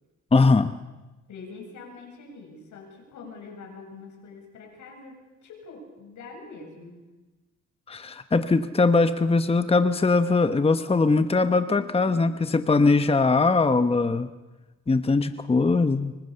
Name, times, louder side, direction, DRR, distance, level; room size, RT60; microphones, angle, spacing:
voice 1, 0.3-0.7 7.9-14.3 14.9-16.1, left 3 dB, 20° left, 10 dB, 1.1 m, -21 dB
voice 2, 1.3-7.0 11.7-12.3, left 4 dB, 75° left, 3 dB, 7.8 m, -44 dB
25.5 x 24.5 x 6.9 m, 1.2 s
cardioid pair, 90°, 30 cm